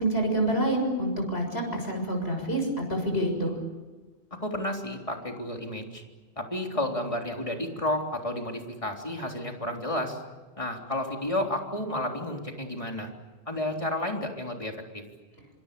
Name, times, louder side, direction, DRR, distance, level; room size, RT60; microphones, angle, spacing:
voice 1, 0.0-3.5, right 1 dB, 70° left, 3 dB, 7.0 m, -27 dB
voice 2, 4.4-6.0 6.4-10.2 10.6-13.1 13.5-15.0, left 1 dB, 30° left, 2 dB, 3.7 m, -31 dB
26.5 x 26.5 x 6.9 m, 1.3 s
omnidirectional pair, 1.1 m